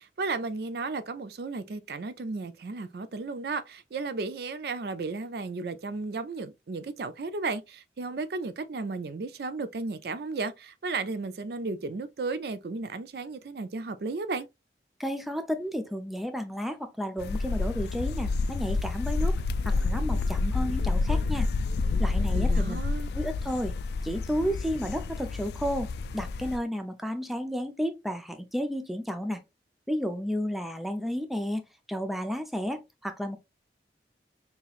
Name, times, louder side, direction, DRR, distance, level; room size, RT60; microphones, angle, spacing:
voice 1, 0.0-14.5 22.3-23.1, right 3 dB, 60° right, 0.4 m, -34 dB
voice 2, 15.0-21.5 22.0-22.8 23.1-23.7 24.0-29.4 29.9-31.6 31.9-33.4, equal, ahead, 0.4 m, -32 dB
sound 1, 17.2-26.6, left 3 dB, 65° left, 0.3 m, -29 dB
5.5 x 2.9 x 2.4 m
head